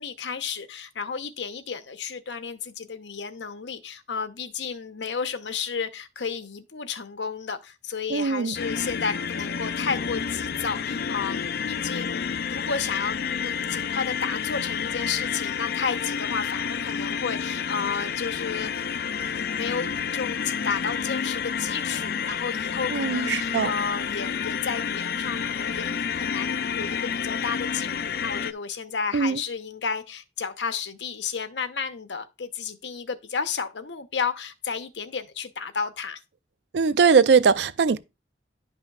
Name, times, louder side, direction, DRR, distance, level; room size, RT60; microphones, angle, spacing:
voice 1, 0.0-18.7 19.1-36.2, left 6 dB, 85° left, 0.8 m, -32 dB
voice 2, 8.1-8.5 22.9-23.7 29.1-29.4 36.7-38.0, right 5 dB, 70° right, 0.5 m, -20 dB
sound 1, 8.5-28.5, left 7 dB, 60° left, 0.4 m, -29 dB
11.0 x 5.6 x 2.3 m
head